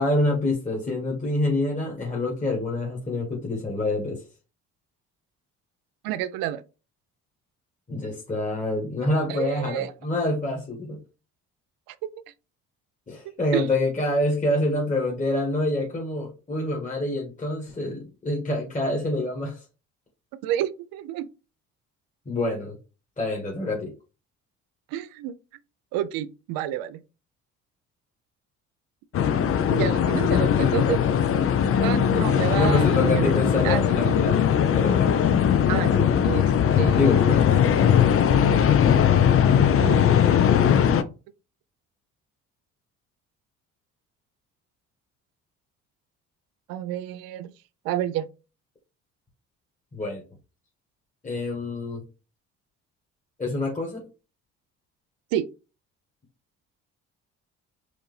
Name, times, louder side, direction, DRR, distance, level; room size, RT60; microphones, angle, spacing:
voice 1, 0.0-4.2 7.9-11.0 13.1-19.6 22.2-22.8 23.2-23.9 32.5-34.5 34.7-35.1 36.9-37.4 49.9-50.2 51.2-52.0 53.4-54.1, left 2 dB, 20° left, 1.5 m, -26 dB
voice 2, 6.0-6.6 9.3-9.9 11.9-12.1 13.5-13.7 20.4-21.3 24.9-25.4 25.9-27.0 29.7-31.0 31.8-33.3 33.6-34.1 35.7-36.5 36.8-37.4 39.8-40.5 46.7-47.5 47.8-48.3 55.3-55.5, right 12 dB, 80° right, 0.5 m, -29 dB
sound 1, 29.1-41.0, left 8 dB, 40° left, 0.5 m, -20 dB
4.8 x 2.6 x 3.2 m
supercardioid pair, 65°, 34 cm